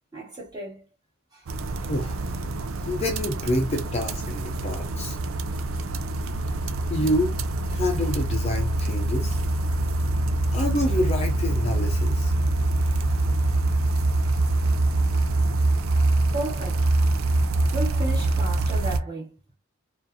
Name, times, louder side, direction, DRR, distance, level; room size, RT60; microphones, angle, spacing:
voice 1, 0.1-0.8 1.3-1.5 16.3-16.9 17.7-19.4, right 2 dB, 20° right, 2.5 m, -34 dB
sound 1, 1.5-19.0, right 2 dB, 90° right, 0.5 m, -24 dB
voice 2, 1.8-2.2 2.8-5.2 6.9-7.3 7.7-9.4 10.5-12.3, left 1 dB, 30° left, 0.7 m, -27 dB
4.9 x 2.5 x 2.7 m
head